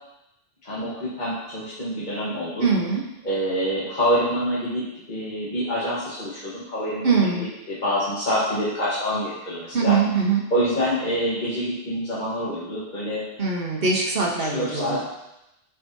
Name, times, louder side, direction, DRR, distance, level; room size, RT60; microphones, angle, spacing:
voice 1, 0.6-2.7 3.2-7.3 7.7-10.0 10.5-13.2 14.4-15.0, equal, 45° left, -9 dB, 1.4 m, -26 dB
voice 2, 2.6-3.1 7.0-7.5 9.7-10.4 13.4-15.0, right 5 dB, 55° right, -1 dB, 1.2 m, -22 dB
8.1 x 4.8 x 2.7 m, 0.91 s
omnidirectional pair, 1.2 m